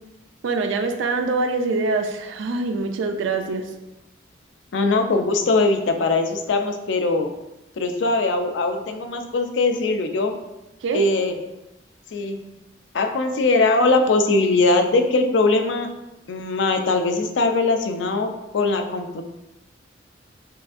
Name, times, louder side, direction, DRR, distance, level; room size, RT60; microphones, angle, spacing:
voice 1, 0.4-3.7 10.8-11.0, right 3 dB, 75° right, 6 dB, 0.4 m, -24 dB
voice 2, 4.7-7.3 7.8-10.3 10.9-11.4 12.1-12.4 12.9-15.9 16.3-19.2, left 3 dB, 70° left, 6 dB, 0.4 m, -21 dB
5.7 x 2.6 x 2.4 m, 0.97 s
head